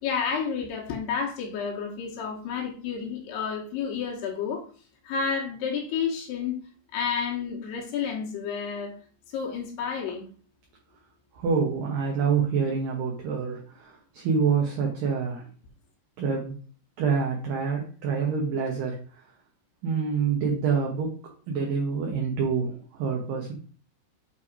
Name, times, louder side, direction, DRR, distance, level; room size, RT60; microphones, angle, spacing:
voice 1, 0.0-4.7 5.0-6.6 6.9-8.9 9.3-10.3, left 6 dB, 75° left, -1 dB, 3.1 m, -30 dB
voice 2, 11.3-15.5 16.2-16.5 17.0-19.2 19.8-21.1 21.5-23.5, right 5 dB, 65° right, -1 dB, 2.3 m, -27 dB
8.6 x 3.4 x 4.9 m, 0.41 s
omnidirectional pair, 5.2 m